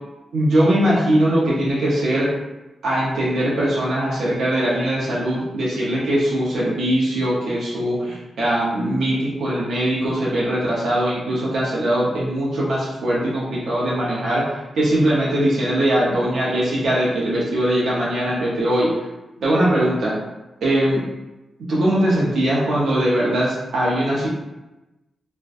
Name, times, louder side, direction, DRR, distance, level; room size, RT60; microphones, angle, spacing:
voice 1, 0.3-2.3 2.8-18.9 19.4-20.2 20.6-21.0 21.7-24.3, right 1 dB, 80° right, -6 dB, 0.6 m, -21 dB
2.6 x 2.1 x 2.3 m, 1.0 s
cardioid pair, 65°, 0 cm